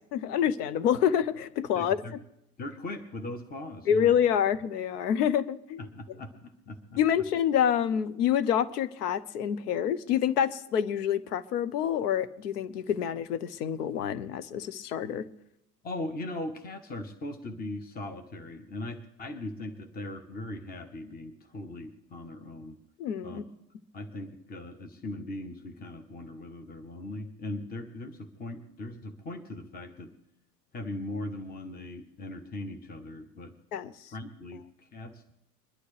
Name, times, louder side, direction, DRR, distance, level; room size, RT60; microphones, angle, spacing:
voice 1, 0.1-2.0 3.9-5.8 7.0-15.3 23.0-23.4 33.7-33.9, left 9 dB, 70° left, 15 dB, 0.9 m, -27 dB
voice 2, 1.7-2.2 2.6-4.1 5.8-7.0 15.8-22.8 23.2-23.4 23.9-30.1 30.7-33.5 34.1-35.4, left 1 dB, 20° left, 7 dB, 1.2 m, -39 dB
22.5 x 11.5 x 3.3 m, 0.81 s
figure-of-eight pair, 80°, 50 cm